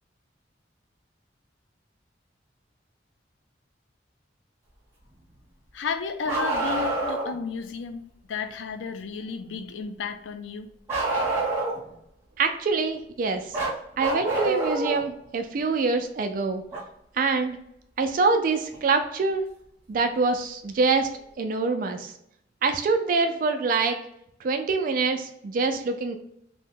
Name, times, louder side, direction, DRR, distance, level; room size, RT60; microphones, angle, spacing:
voice 1, 5.7-8.0 8.3-10.7, left 5 dB, 85° left, 0.4 m, -33 dB
Bark, 6.2-7.3 10.9-11.9 13.5-15.0 16.7-16.8 18.7-18.8 19.9-20.0, right 2 dB, 15° right, 0.9 m, -27 dB
voice 2, 12.4-13.6 14.0-16.6 17.1-17.6 18.0-19.4 19.9-21.1 21.4-22.1 22.6-24.0 24.4-26.2, right 4 dB, 50° right, 0.3 m, -25 dB
2.7 x 2.1 x 3.6 m
head